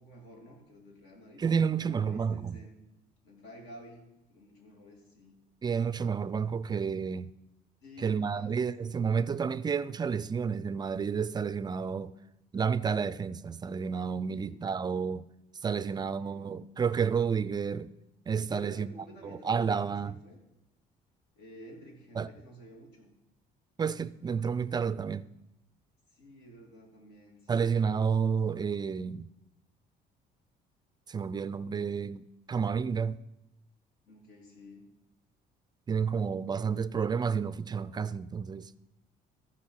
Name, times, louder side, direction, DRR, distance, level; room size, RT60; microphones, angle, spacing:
voice 1, 0.0-2.8 3.2-5.4 7.8-8.5 14.3-14.6 15.8-16.5 18.5-20.4 21.3-23.1 26.1-27.7 34.1-34.9, equal, 75° left, 2.9 m, -52 dB
voice 2, 1.4-2.6 5.6-7.3 8.0-12.1 12.5-15.2 15.6-17.9 18.3-18.9 19.4-20.2 22.2-22.3 23.8-25.3 27.5-29.3 31.1-33.2 35.9-38.7, right 6 dB, 25° right, 0.3 m, -30 dB
15.0 x 5.0 x 5.6 m
cardioid pair, 110°, 17 cm